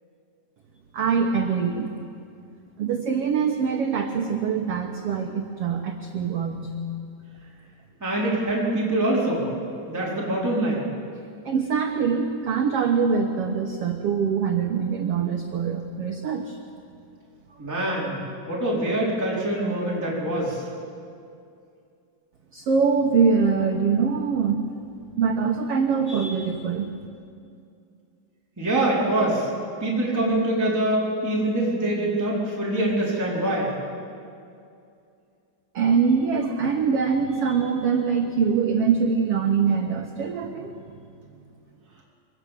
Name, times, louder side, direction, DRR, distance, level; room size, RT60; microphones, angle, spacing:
voice 1, 0.9-1.9 2.8-6.8 11.4-16.6 22.5-24.6 25.2-26.9 35.7-40.8, right 6 dB, 60° right, 3 dB, 1.6 m, -23 dB
voice 2, 8.0-9.5 9.9-10.8 17.6-20.7 28.6-29.5 29.8-33.7, right 1 dB, 5° right, -6 dB, 4.0 m, -24 dB
24.0 x 18.0 x 7.5 m, 2.4 s
omnidirectional pair, 3.8 m